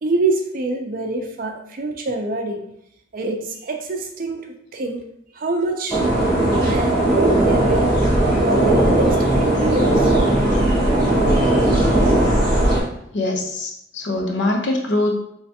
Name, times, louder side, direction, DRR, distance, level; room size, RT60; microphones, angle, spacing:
voice 1, 0.0-2.6 3.1-5.0 5.3-6.0 6.6-7.9 8.3-10.1, right 2 dB, 45° right, 3 dB, 0.5 m, -25 dB
sound 1, 5.9-12.8, right 1 dB, 15° left, 1.5 m, -17 dB
voice 2, 13.1-15.2, left 2 dB, 60° left, 2 dB, 0.6 m, -23 dB
3.2 x 3.2 x 2.8 m, 0.76 s
head